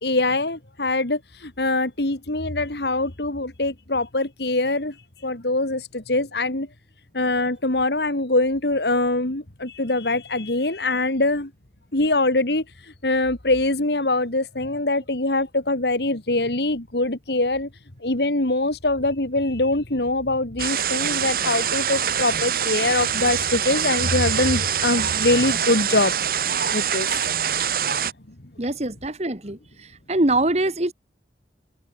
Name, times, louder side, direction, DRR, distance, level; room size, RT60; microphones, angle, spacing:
voice 1, 0.0-5.0 5.2-6.7 7.1-11.5 11.9-17.7 18.0-26.1 26.7-27.2, left 2 dB, 70° left, 2.5 m, -23 dB
sound 1, 20.6-28.1, right 8 dB, 55° right, 1.7 m, -24 dB
voice 2, 28.6-29.6 30.1-30.9, right 2 dB, 40° right, 1.8 m, -23 dB
head